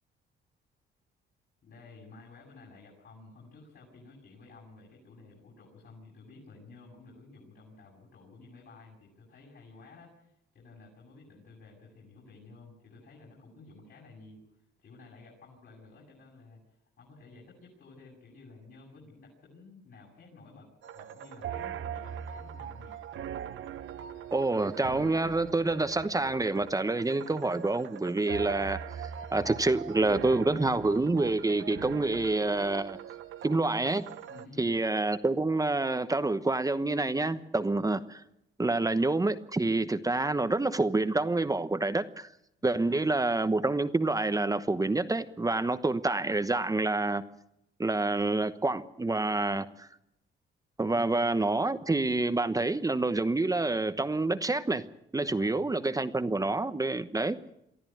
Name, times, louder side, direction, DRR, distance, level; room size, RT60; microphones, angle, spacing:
voice 1, 1.6-14.4 14.8-20.7 20.9-23.0 34.3-34.6 37.7-37.9 42.6-43.0 50.9-51.1 55.2-55.8, left 3 dB, 60° left, -3 dB, 8.0 m, -53 dB
sound 1, 20.8-34.5, right 9 dB, 75° right, 1.1 m, -41 dB
voice 2, 24.3-33.0 33.4-34.1 34.6-38.2 38.6-42.3 42.6-47.2 47.8-49.9 50.8-54.8 55.1-57.4, right 2 dB, 15° right, 10 dB, 1.0 m, -28 dB
23.5 x 14.0 x 9.2 m, 0.79 s
cardioid pair, 90°, 20 cm